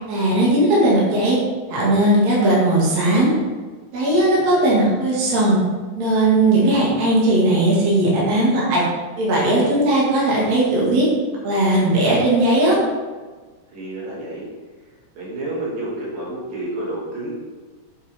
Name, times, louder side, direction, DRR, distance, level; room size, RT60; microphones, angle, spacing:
voice 1, 0.1-1.4 1.7-3.3 3.9-5.6 5.9-8.8 9.2-11.1 11.4-12.7, right 1 dB, 55° right, -6 dB, 3.3 m, -17 dB
voice 2, 13.7-14.5 15.2-17.3, right 1 dB, 85° right, -6 dB, 4.3 m, -29 dB
8.5 x 7.8 x 3.6 m, 1.4 s
omnidirectional pair, 3.9 m